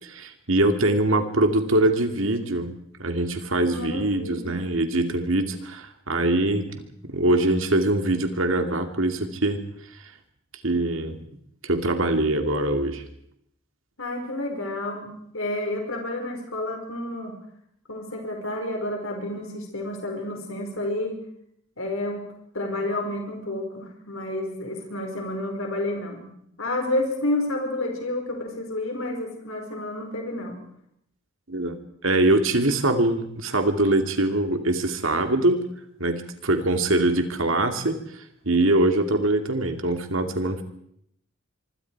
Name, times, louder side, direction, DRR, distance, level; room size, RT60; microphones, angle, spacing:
voice 1, 0.0-9.6 10.6-11.2 11.6-13.0 31.5-31.8 32.0-35.6 36.0-38.0 38.5-40.6, right 2 dB, 65° right, 6 dB, 2.6 m, -23 dB
voice 2, 3.7-4.6 14.0-17.3 17.9-21.2 21.8-22.2 22.5-30.6, left 1 dB, 70° left, 2 dB, 4.9 m, -30 dB
25.0 x 24.5 x 4.7 m, 0.71 s
head